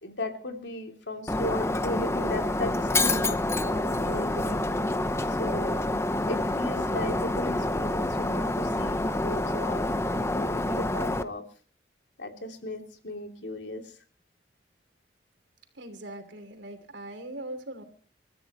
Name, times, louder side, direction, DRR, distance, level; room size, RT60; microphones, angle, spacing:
voice 1, 0.0-3.4 3.6-4.6 5.3-5.9 6.3-11.5 12.2-13.9, left 1 dB, 80° left, 4 dB, 2.9 m, -36 dB
Shatter, 1.3-11.2, left 2 dB, 15° left, 0.8 m, -27 dB
voice 2, 15.7-17.8, right 1 dB, 85° right, 7 dB, 3.1 m, -40 dB
29.5 x 14.0 x 3.0 m, 0.39 s
head